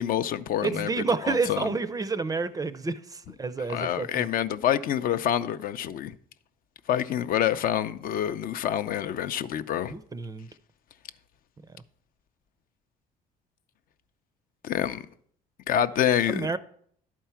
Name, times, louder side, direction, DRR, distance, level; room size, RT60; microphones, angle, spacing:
voice 1, 0.0-1.7 3.7-6.1 6.9-9.9 14.6-15.1 15.7-16.6, left 10 dB, 55° left, 0.5 m, -27 dB
voice 2, 0.6-4.3 9.9-10.5 16.3-16.6, right 4 dB, 20° right, 0.4 m, -29 dB
11.0 x 4.5 x 5.7 m
cardioid pair, 110°, 17 cm